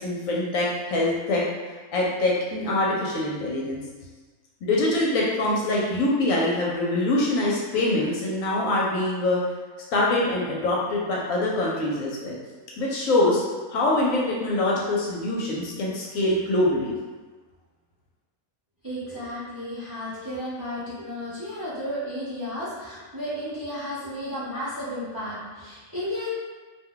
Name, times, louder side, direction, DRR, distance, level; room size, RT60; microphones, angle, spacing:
voice 1, 0.0-1.4 1.9-3.8 4.6-9.4 9.9-12.4 12.8-13.4 13.7-16.9, left 2 dB, 70° left, -4 dB, 0.9 m, -24 dB
voice 2, 18.8-26.3, equal, 25° right, -11 dB, 0.5 m, -33 dB
2.6 x 2.2 x 3.7 m, 1.4 s
omnidirectional pair, 1.6 m